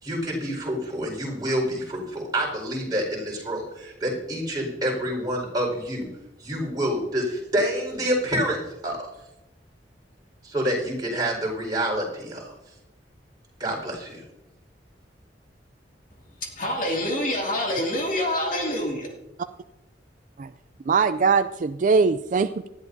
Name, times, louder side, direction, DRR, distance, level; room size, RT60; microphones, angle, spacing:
voice 1, 0.0-6.1 6.4-9.0 10.4-12.5 13.6-14.2, equal, 25° right, -2 dB, 4.8 m, -27 dB
voice 2, 16.1-19.2, left 1 dB, 50° left, 0 dB, 2.5 m, -27 dB
voice 3, 20.9-22.7, right 5 dB, 45° right, 11 dB, 0.4 m, -21 dB
19.0 x 13.0 x 2.7 m, 0.96 s
head